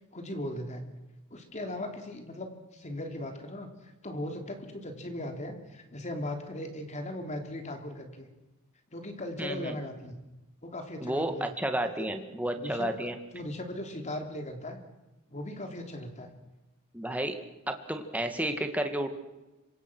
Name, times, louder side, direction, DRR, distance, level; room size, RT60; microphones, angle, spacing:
voice 1, 0.1-0.8 1.3-3.7 4.0-8.3 8.9-10.1 10.6-11.4 12.0-12.3 12.6-12.9 13.3-14.8 15.3-16.3, left 1 dB, 35° left, 5 dB, 3.2 m, -38 dB
voice 2, 9.4-9.8 11.0-13.2 16.9-17.4 17.7-19.1, right 1 dB, 5° right, 6 dB, 2.0 m, -31 dB
26.5 x 24.0 x 6.2 m, 1.0 s
head